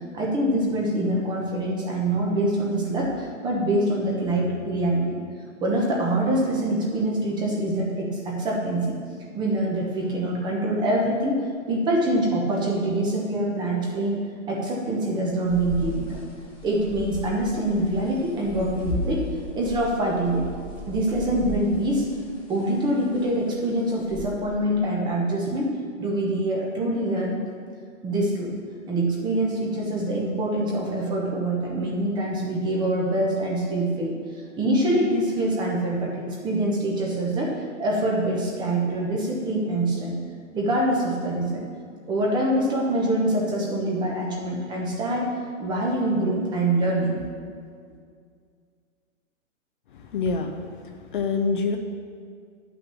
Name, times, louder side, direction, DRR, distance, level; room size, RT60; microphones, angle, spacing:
voice 1, 0.1-5.0 5.6-9.0 9.3-14.2 14.5-16.2 16.6-19.3 19.5-20.4 20.9-22.1 22.5-25.7 26.0-27.4 28.0-28.5 28.9-40.2 40.5-41.6 42.1-47.2, right 1 dB, 10° right, -2 dB, 1.0 m, -25 dB
sound 1, 15.5-24.2, left 2 dB, 10° left, 1.4 m, -36 dB
voice 2, 49.9-51.8, left 4 dB, 40° left, 4 dB, 0.7 m, -27 dB
10.5 x 6.0 x 6.8 m, 2.2 s
hypercardioid pair, 160°, 40 cm